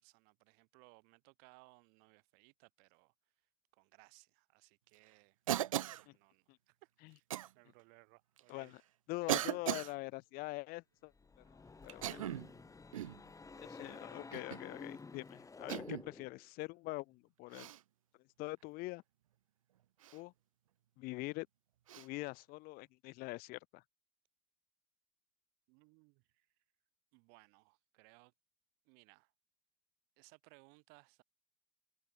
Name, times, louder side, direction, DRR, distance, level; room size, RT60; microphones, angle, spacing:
voice 1, 0.0-3.1 3.7-5.4 5.7-7.2 7.5-8.7 25.7-26.5 27.1-28.3 28.9-29.3 30.2-31.2, right 36 dB, 70° right, 3.6 m, -64 dB
Cough, 5.5-6.0 7.3-7.5 8.4-8.5 9.3-9.9 11.9-12.5 12.9-13.2 14.3-14.7 15.7-16.1 17.5-17.8 20.0-20.2 21.9-22.1, right 13 dB, 85° right, 0.7 m, -37 dB
voice 2, 9.1-11.1 11.8-12.2 13.6-17.7 18.4-19.0 20.1-20.3 21.0-21.5 22.0-23.8, left 22 dB, 65° left, 1.1 m, -44 dB
sound 1, 11.1-16.4, left 4 dB, 20° left, 1.3 m, -51 dB
hypercardioid pair, 65°, 17 cm